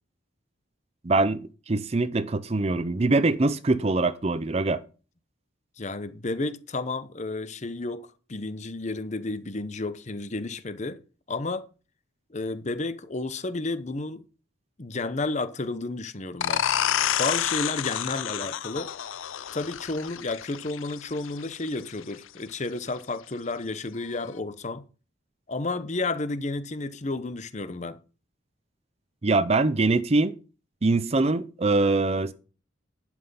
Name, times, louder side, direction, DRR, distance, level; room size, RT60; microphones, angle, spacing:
voice 1, 1.0-4.8 29.2-30.3 30.8-32.3, right 3 dB, 30° right, 0.5 m, -23 dB
voice 2, 5.8-11.0 11.3-11.6 12.3-14.2 14.8-16.6 17.2-18.9 19.5-24.8 25.5-28.0, left 2 dB, 35° left, 0.8 m, -31 dB
sound 1, 16.4-21.8, left 10 dB, 85° left, 0.5 m, -29 dB
11.5 x 6.1 x 5.6 m
head